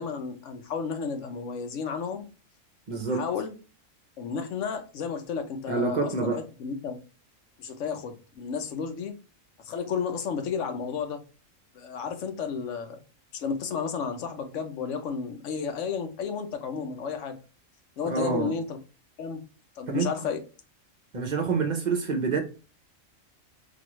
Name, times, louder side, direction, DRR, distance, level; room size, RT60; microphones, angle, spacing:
voice 1, 0.0-2.3 2.9-3.5 4.2-6.3 6.6-7.0 7.6-9.2 9.6-11.2 11.7-13.0 13.3-17.4 18.0-18.8 19.2-19.4 19.8-20.4, left 6 dB, 70° left, 1.1 m, -32 dB
voice 2, 2.9-3.3 5.7-6.4 18.0-18.5 19.9-20.1 21.1-22.4, right 4 dB, 45° right, 0.7 m, -27 dB
4.0 x 2.5 x 3.0 m
omnidirectional pair, 1.3 m